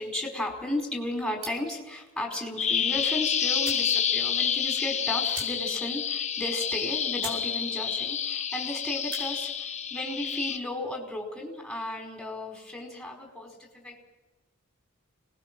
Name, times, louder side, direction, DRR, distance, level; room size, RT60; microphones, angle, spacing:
voice 1, 0.0-9.5 9.9-14.0, left 1 dB, ahead, 0 dB, 4.8 m, -34 dB
sound 1, 1.4-1.8 3.1-3.2 3.6-3.9 4.3-4.4 4.6-4.8 5.3-5.9 6.2-6.3 6.8-6.9 7.2-7.5 7.8-8.2 8.9-9.3, right 3 dB, 85° right, 5.7 m, -41 dB
Bird vocalization bird call bird song, 2.6-10.6, left 8 dB, 35° left, 0.9 m, -29 dB
26.5 x 19.5 x 6.2 m, 1.1 s
head